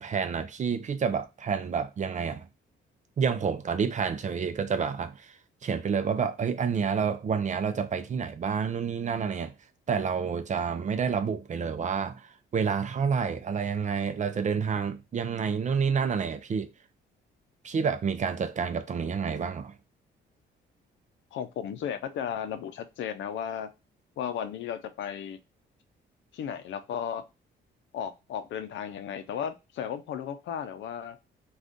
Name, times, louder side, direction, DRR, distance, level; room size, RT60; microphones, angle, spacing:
voice 1, 0.0-2.5 3.2-5.3 5.6-9.5 9.9-16.7 17.6-19.7, right 6 dB, 40° right, 0.5 m, -29 dB
voice 2, 21.3-23.7 24.2-25.4 26.3-27.3 27.9-31.2, left 8 dB, 70° left, 0.5 m, -35 dB
2.5 x 2.3 x 3.5 m
cardioid pair, 90°, 20 cm